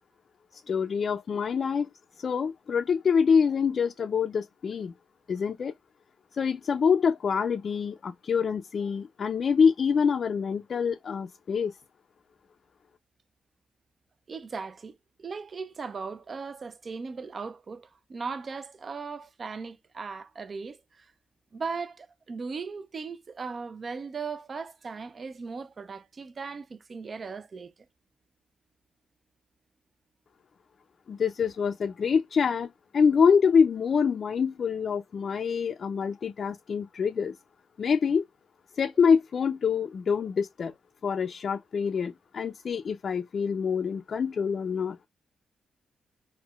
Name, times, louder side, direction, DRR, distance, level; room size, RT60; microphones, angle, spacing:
voice 1, 0.5-1.9 2.2-4.9 5.3-5.7 6.3-11.8 31.1-37.4 37.8-38.2 38.7-40.7 41.0-45.0, left 6 dB, 60° left, 0.4 m, -25 dB
voice 2, 14.3-21.1 21.5-27.7, right 5 dB, 50° right, 0.4 m, -38 dB
4.2 x 2.1 x 2.3 m
cardioid pair, 60°, 0 cm